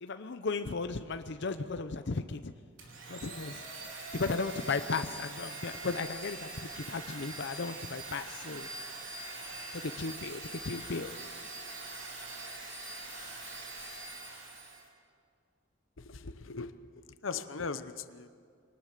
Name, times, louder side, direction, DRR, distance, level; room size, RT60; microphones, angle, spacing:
voice 1, 0.0-2.5 3.1-3.6 4.1-8.7 9.7-11.1, left 4 dB, 65° left, 9 dB, 0.7 m, -35 dB
Domestic sounds home sounds, 2.8-14.9, right 2 dB, 75° right, 4.0 m, -43 dB
voice 2, 16.0-18.3, left 4 dB, 90° left, 11 dB, 0.9 m, -40 dB
23.5 x 19.0 x 6.7 m, 2.2 s
head